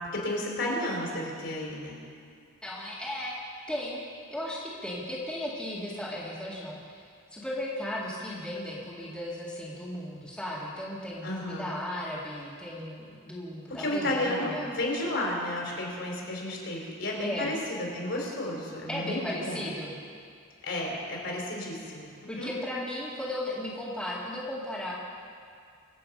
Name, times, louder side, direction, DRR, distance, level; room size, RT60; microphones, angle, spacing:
voice 1, 0.0-2.0 11.2-11.7 13.7-19.7 20.6-22.5, left 1 dB, 55° left, -2 dB, 3.8 m, -32 dB
voice 2, 2.6-3.4 3.7-4.0 4.3-7.0 7.3-14.7 17.2-17.5 18.9-19.9 22.3-24.9, left 1 dB, 5° left, -8 dB, 2.2 m, -35 dB
25.0 x 8.7 x 5.4 m, 2.2 s
head